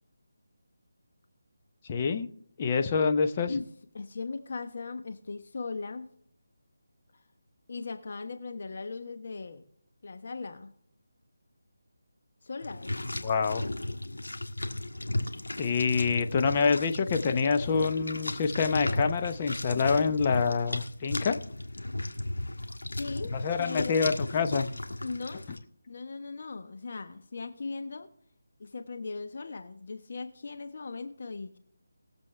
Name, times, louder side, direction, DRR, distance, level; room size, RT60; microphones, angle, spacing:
voice 1, 1.9-2.3 2.6-3.5 13.2-13.7 15.6-21.4 23.3-24.7, left 5 dB, 30° left, 6 dB, 0.9 m, -26 dB
voice 2, 3.9-6.1 7.7-9.6 10.0-10.7 12.4-12.9 16.7-16.9 17.6-17.9 23.0-24.0 25.0-25.5 25.9-28.1 28.6-31.6, left 4 dB, 50° left, 7 dB, 1.1 m, -38 dB
sound 1, 12.6-25.6, left 1 dB, 85° left, 1.6 m, -35 dB
20.5 x 7.5 x 3.3 m, 0.66 s
figure-of-eight pair, 160°, 0 cm